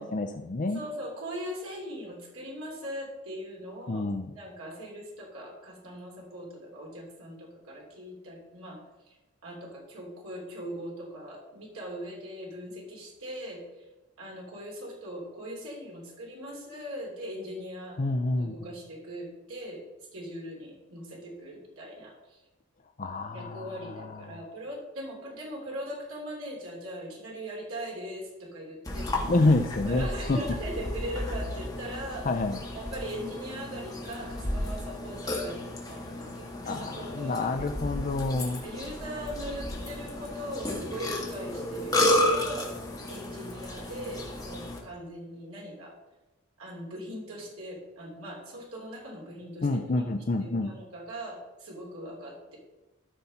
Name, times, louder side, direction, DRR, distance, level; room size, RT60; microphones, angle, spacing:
voice 1, 0.0-0.8 3.9-4.3 18.0-18.5 23.0-24.4 29.3-30.4 32.2-32.6 36.6-38.6 49.6-50.7, left 2 dB, 40° left, 6 dB, 0.5 m, -28 dB
voice 2, 0.7-4.1 4.3-8.8 9.4-13.6 14.2-18.0 18.4-19.8 20.1-22.1 23.3-29.3 29.8-32.3 32.7-37.6 38.6-42.8 43.1-45.9 46.6-49.9 50.4-52.6, equal, 80° right, -2 dB, 3.1 m, -40 dB
Burping eructation, 28.8-44.8, left 1 dB, 15° left, 1.8 m, -32 dB
13.5 x 5.7 x 4.2 m, 1.1 s
head